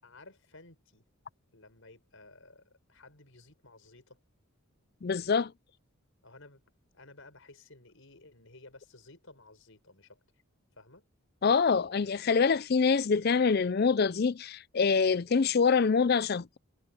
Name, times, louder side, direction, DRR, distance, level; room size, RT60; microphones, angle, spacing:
voice 1, 0.0-1.0 1.5-4.2 6.2-6.6 6.9-10.2 10.8-11.1, left 2 dB, 60° left, 5.9 m, -55 dB
voice 2, 5.0-5.5 11.4-16.6, left 5 dB, 45° left, 0.4 m, -25 dB
head